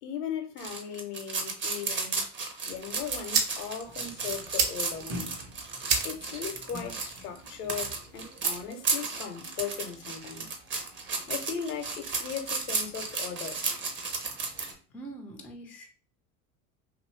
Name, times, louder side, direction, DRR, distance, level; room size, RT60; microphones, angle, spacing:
voice 1, 0.0-2.3 2.6-5.3 6.0-10.6 11.3-13.6, left 7 dB, 80° left, 0.8 m, -38 dB
sound 1, 0.6-14.7, right 4 dB, 25° right, 0.7 m, -33 dB
sound 2, 2.7-8.7, right 5 dB, 65° right, 0.8 m, -34 dB
sound 3, 3.8-14.8, left 1 dB, 45° right, 1.1 m, -49 dB
voice 2, 14.9-15.9, right 2 dB, 5° left, 0.3 m, -43 dB
2.7 x 2.5 x 3.1 m
hypercardioid pair, 85°, 46 cm